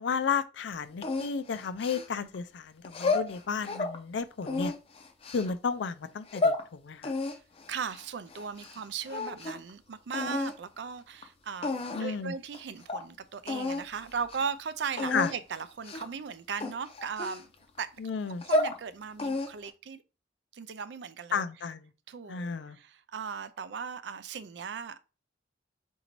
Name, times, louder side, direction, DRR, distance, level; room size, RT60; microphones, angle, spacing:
voice 1, 0.0-4.7 5.3-7.1 11.9-12.3 15.1-15.3 18.0-18.4 21.3-21.9 22.3-22.8, left 5 dB, 85° left, 0.5 m, -32 dB
sound 1, 1.0-2.4 2.8-4.0 4.4-5.5 6.1-6.6 7.0-8.8 9.1-9.7 10.1-10.6 11.2-11.3 11.6-12.2 12.5-12.6 12.9-13.0 13.5-13.8 14.2-14.4 15.0-15.3 15.8-16.2 16.6-17.8 18.3-18.8 19.2-19.7, left 2 dB, 35° left, 0.5 m, -31 dB
voice 2, 7.7-17.5 17.8-17.9 18.4-20.0 20.5-21.4 22.1-25.0, right 6 dB, 75° right, 0.4 m, -37 dB
3.9 x 2.7 x 4.5 m
head